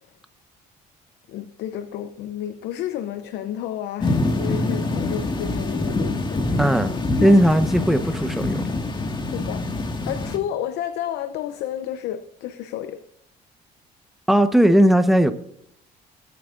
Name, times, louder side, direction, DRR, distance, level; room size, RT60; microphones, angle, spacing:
voice 1, 1.3-6.4 7.2-7.4 9.3-9.7 10.1-13.0, left 11 dB, 85° left, 0.8 m, -31 dB
sound 1, 4.0-10.4, left 2 dB, 25° left, 1.8 m, -25 dB
voice 2, 6.6-6.9 7.2-8.6 14.3-15.3, equal, ahead, 1.1 m, -17 dB
21.5 x 9.5 x 2.5 m
cardioid pair, 110°, 17 cm